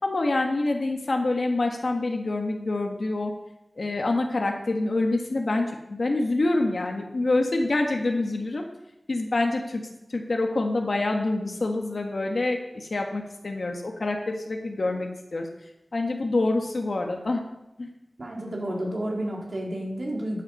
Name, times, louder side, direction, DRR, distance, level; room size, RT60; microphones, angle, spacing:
voice 1, 0.0-3.3 3.8-8.7 9.1-9.8 10.1-17.4 17.8-17.9, left 2 dB, 70° left, 2 dB, 1.4 m, -26 dB
voice 2, 18.2-20.4, right 1 dB, 60° right, -2 dB, 3.4 m, -31 dB
12.5 x 8.2 x 5.5 m, 0.89 s
wide cardioid pair, 75°, 0 cm